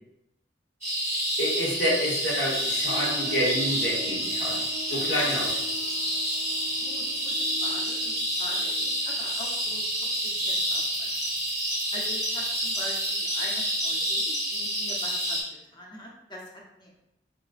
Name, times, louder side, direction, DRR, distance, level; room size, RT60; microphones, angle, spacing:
sound 1, 0.8-15.4, equal, 15° right, 0.9 m, -28 dB
voice 1, 1.4-5.5, equal, 75° left, -5 dB, 1.1 m, -28 dB
sound 2, 2.8-11.2 11.6-11.7 12.2-12.4, left 3 dB, 60° right, 0.5 m, -43 dB
voice 2, 6.8-7.3 7.6-8.1 8.4-11.1 11.9-15.4 15.7-16.9, equal, 25° left, -2 dB, 0.6 m, -43 dB
3.9 x 2.1 x 2.4 m, 0.84 s
head